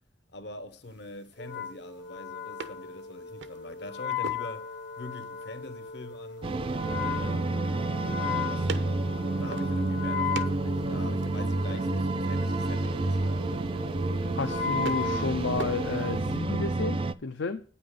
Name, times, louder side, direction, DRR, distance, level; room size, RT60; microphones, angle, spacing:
voice 1, 0.3-6.5 7.0-8.7 9.4-13.4, left 1 dB, 70° left, 1.0 m, -44 dB
sound 1, 0.8-16.4, right 4 dB, 85° right, 0.8 m, -46 dB
Wind instrument woodwind instrument, 1.4-16.1, left 6 dB, 45° left, 0.7 m, -37 dB
sound 2, 6.4-17.1, right 2 dB, 30° right, 0.4 m, -29 dB
voice 2, 14.4-17.6, left 4 dB, 90° left, 0.6 m, -32 dB
9.2 x 5.7 x 6.6 m
head